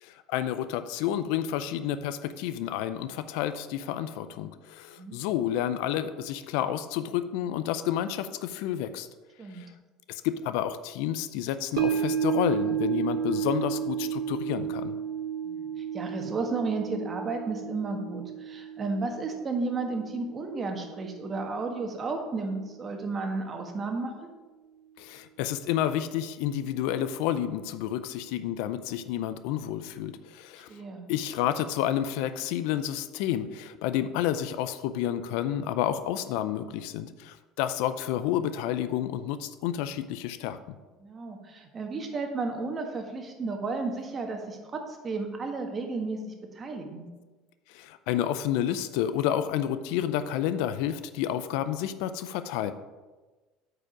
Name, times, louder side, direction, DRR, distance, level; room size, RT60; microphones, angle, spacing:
voice 1, 0.0-9.1 9.5-9.7 10.1-15.0 25.0-30.7 31.1-40.8 47.7-52.7, left 11 dB, 75° left, 12 dB, 0.5 m, -30 dB
sound 1, 11.8-22.1 22.5-22.6, right 8 dB, 70° right, 0.9 m, -32 dB
voice 2, 15.4-24.3 30.7-31.1 41.0-47.1, right 3 dB, 35° right, 3 dB, 1.5 m, -33 dB
8.9 x 4.9 x 5.0 m, 1.2 s
supercardioid pair, 90°, 0 cm